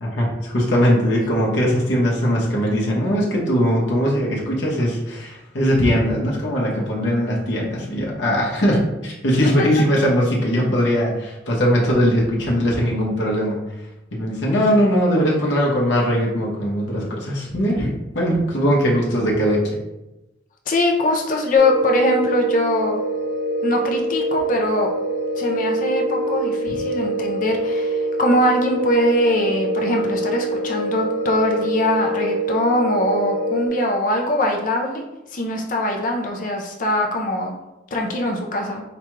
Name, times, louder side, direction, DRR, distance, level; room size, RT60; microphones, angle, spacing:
voice 1, 0.0-13.6 14.1-19.8, equal, 70° left, -4 dB, 0.9 m, -20 dB
voice 2, 9.4-9.8 20.7-23.0 23.6-24.9 25.4-35.0 35.3-37.5 37.9-38.8, left 1 dB, 45° left, 1 dB, 0.5 m, -22 dB
sound 1, 21.6-33.7, right 1 dB, 25° right, 1.0 m, -24 dB
4.9 x 2.3 x 3.1 m, 0.98 s
head